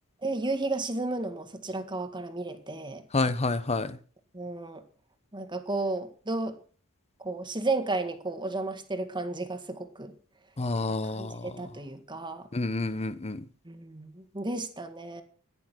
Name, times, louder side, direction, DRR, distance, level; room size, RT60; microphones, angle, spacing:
voice 1, 0.2-3.0 4.3-4.8 5.3-6.6 7.2-10.1 11.1-12.5 13.7-15.2, right 2 dB, 20° right, 7 dB, 1.8 m, -33 dB
voice 2, 3.1-4.0 10.6-11.5 12.5-13.4, left 3 dB, 30° left, 14 dB, 0.8 m, -29 dB
15.0 x 10.0 x 6.1 m, 0.40 s
head